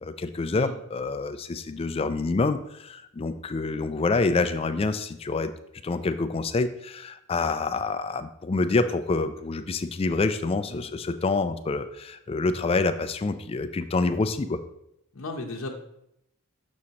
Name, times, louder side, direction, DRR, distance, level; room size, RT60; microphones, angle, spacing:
voice 1, 0.0-5.5 5.8-14.6, left 3 dB, 30° left, 10 dB, 0.3 m, -27 dB
voice 2, 15.2-15.7, left 2 dB, 85° left, 1 dB, 0.8 m, -35 dB
7.0 x 6.3 x 2.8 m, 0.79 s
head